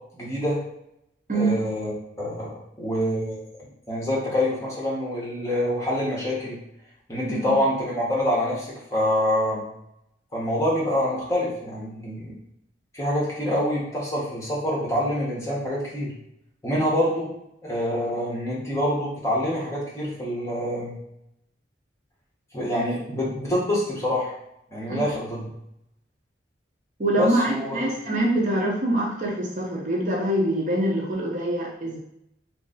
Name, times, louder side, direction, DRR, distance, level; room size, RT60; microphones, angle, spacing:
voice 1, 0.1-0.6 1.3-1.9 2.2-3.5 3.9-6.6 7.1-9.6 10.3-12.3 12.9-16.1 16.6-17.3 17.6-21.0 22.5-24.3 24.7-25.5 27.2-27.9, left 1 dB, 15° left, -5 dB, 1.0 m, -26 dB
voice 2, 27.0-32.0, right 1 dB, 40° right, -2 dB, 0.7 m, -24 dB
3.1 x 2.5 x 3.8 m, 0.77 s
head